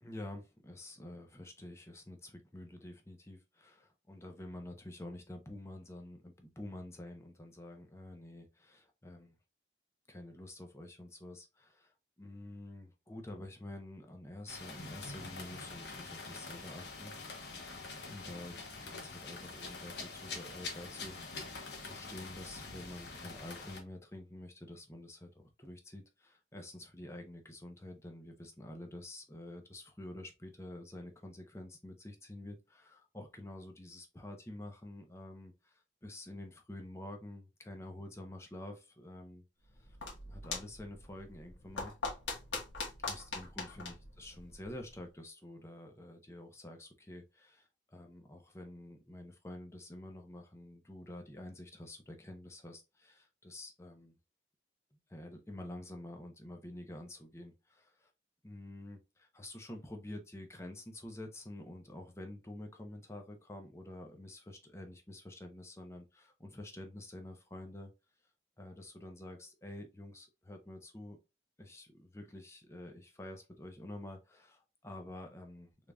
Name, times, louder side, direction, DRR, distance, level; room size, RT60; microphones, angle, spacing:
voice 1, 0.0-9.3 10.1-17.1 18.1-39.4 39.7-40.0 40.2-41.9 43.0-54.1 54.9-58.1 58.4-67.9 68.6-71.2 71.6-75.9, left 1 dB, 15° left, 0.6 m, -48 dB
sound 1, 14.5-23.8, left 3 dB, 70° left, 1.0 m, -45 dB
sound 2, 39.6-45.0, left 3 dB, 85° left, 1.3 m, -43 dB
3.7 x 3.4 x 2.2 m
head